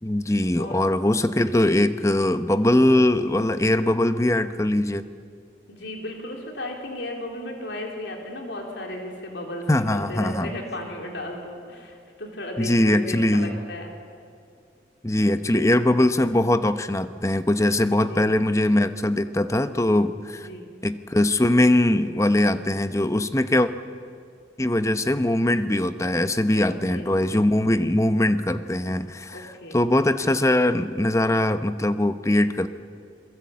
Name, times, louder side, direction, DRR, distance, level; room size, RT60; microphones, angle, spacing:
voice 1, 0.0-5.0 9.7-10.5 12.6-13.6 15.0-20.5 20.8-23.7 24.6-32.7, left 1 dB, 15° left, 10 dB, 0.8 m, -21 dB
voice 2, 5.7-13.9 18.0-18.4 20.4-20.7 26.7-27.1 29.3-29.8, left 1 dB, 80° left, 1 dB, 3.8 m, -35 dB
28.5 x 23.0 x 8.6 m, 2.3 s
head